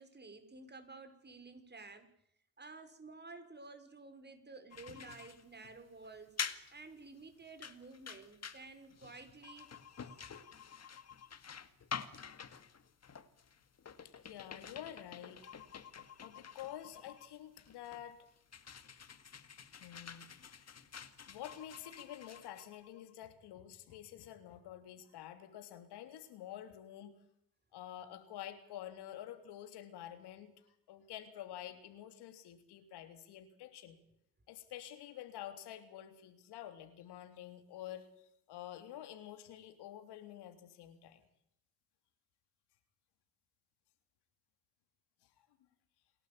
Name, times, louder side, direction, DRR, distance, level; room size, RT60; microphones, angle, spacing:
voice 1, 0.0-2.1 2.6-6.3 6.7-10.4, right 3 dB, 25° right, 9 dB, 5.2 m, -53 dB
sound 1, 4.7-23.1, left 7 dB, 40° left, 2.0 m, -48 dB
voice 2, 14.0-15.4 16.2-18.3 19.7-20.8 21.3-27.1 27.7-30.5 30.9-34.0 34.5-41.2 45.2-45.3, left 11 dB, 90° left, 9 dB, 3.4 m, -49 dB
28.5 x 12.0 x 8.7 m, 0.73 s
cardioid pair, 90°, 39 cm